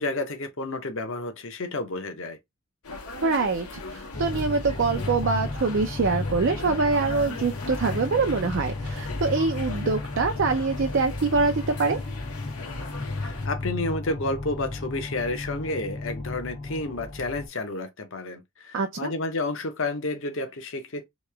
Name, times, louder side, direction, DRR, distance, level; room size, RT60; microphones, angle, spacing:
voice 1, 0.0-2.4 13.2-21.0, left 2 dB, 60° left, 0.8 m, -31 dB
sound 1, 2.8-13.5, left 3 dB, 85° left, 1.2 m, -39 dB
voice 2, 3.2-12.0 18.7-19.1, right 4 dB, 55° right, 0.4 m, -25 dB
sound 2, 4.1-17.5, left 2 dB, 25° left, 0.6 m, -33 dB
3.1 x 2.9 x 3.3 m
head